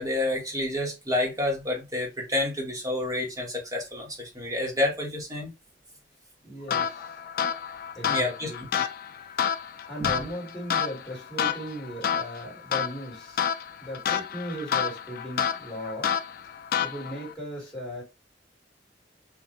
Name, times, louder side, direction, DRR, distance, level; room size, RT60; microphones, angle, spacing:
voice 1, 0.0-5.5 8.0-8.5 10.0-10.2, left 1 dB, 20° right, 1.3 m, -29 dB
voice 2, 6.4-7.1 8.0-8.7 9.9-13.5 13.8-16.1 16.8-18.0, equal, 5° left, 1.9 m, -37 dB
sound 1, 6.7-17.3, left 8 dB, 55° left, 0.3 m, -30 dB
4.0 x 2.5 x 3.0 m
head